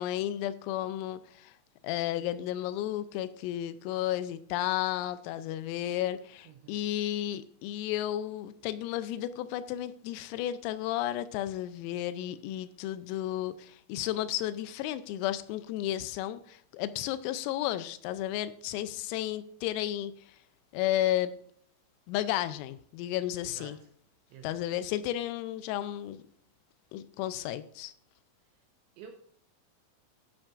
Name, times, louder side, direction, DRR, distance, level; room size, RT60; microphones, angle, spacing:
voice 1, 0.0-1.6 1.8-20.4 20.7-21.3 22.1-23.8 24.4-26.2 26.9-27.9, left 13 dB, 90° left, 13 dB, 3.3 m, -33 dB
voice 2, 6.5-6.8 23.4-23.7 24.3-24.6 29.0-29.1, right 7 dB, 85° right, 5 dB, 2.7 m, -49 dB
13.0 x 8.8 x 2.5 m, 0.63 s
omnidirectional pair, 6.0 m